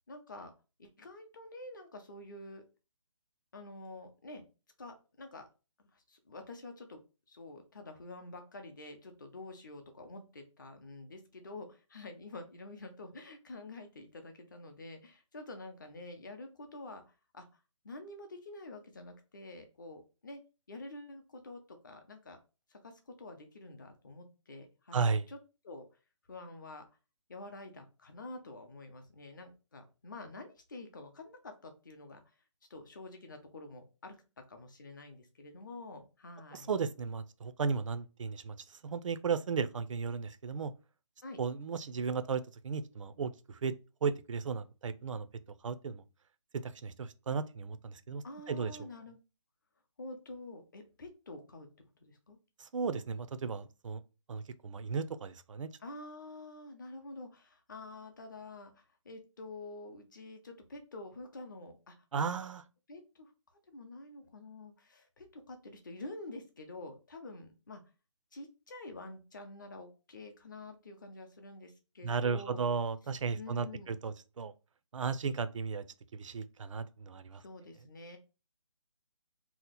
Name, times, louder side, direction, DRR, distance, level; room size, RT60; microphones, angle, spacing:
voice 1, 0.1-0.5 0.8-2.6 3.5-4.4 4.8-5.5 5.9-7.0 7.3-17.0 17.3-17.5 17.8-20.4 20.7-22.4 22.7-25.4 25.6-25.9 26.3-26.8 27.3-32.2 32.7-36.7 41.2-41.4 48.2-49.2 50.0-51.7 52.0-52.4 52.9-53.0 55.8-62.0 62.3-62.4 62.9-63.3 63.7-67.8 68.3-72.6 73.3-73.9 77.4-78.2, left 2 dB, 40° left, 0.6 m, -48 dB
voice 2, 24.9-25.3 36.5-40.7 41.4-43.7 44.0-45.3 45.6-46.0 46.6-48.7 52.6-54.0 54.3-55.7 62.1-62.6 72.0-74.5 74.9-75.8 76.1-77.4, right 5 dB, 75° right, 0.4 m, -35 dB
2.8 x 2.0 x 4.0 m
hypercardioid pair, 170°, 17 cm